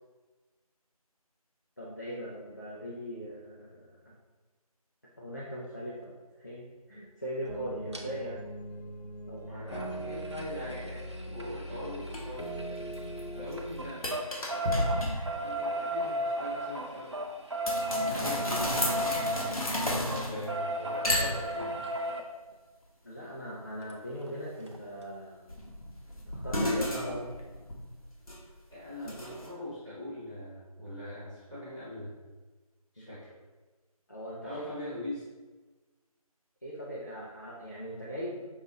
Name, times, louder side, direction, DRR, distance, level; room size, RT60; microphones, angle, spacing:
voice 1, 1.8-4.1 5.2-6.1 6.4-8.4 9.3-9.8 23.0-25.5 26.3-27.3 29.0-29.2 33.0-33.2 34.1-34.7 36.6-38.4, equal, 30° left, -6 dB, 0.4 m, -40 dB
sound 1, 7.5-13.9, right 1 dB, 90° left, 0.8 m, -41 dB
sound 2, 7.9-8.0 9.7-13.2 13.5-22.2 23.9-24.0 24.3-24.4 24.7-24.8, right 1 dB, 45° right, 0.5 m, -34 dB
voice 2, 9.4-12.5 13.3-14.0 14.7-15.1 15.4-17.1 18.0-21.7 28.7-32.1 32.9-33.3 34.4-35.3, left 1 dB, 5° left, -16 dB, 1.0 m, -41 dB
sound 3, 12.1-12.2 12.8-13.2 13.5-13.6 14.0-15.4 17.7-20.6 21.0-21.9 25.5-28.6 29.1-29.5, left 1 dB, 65° left, 1.1 m, -32 dB
5.4 x 2.4 x 3.9 m, 1.3 s
figure-of-eight pair, 170°, 20 cm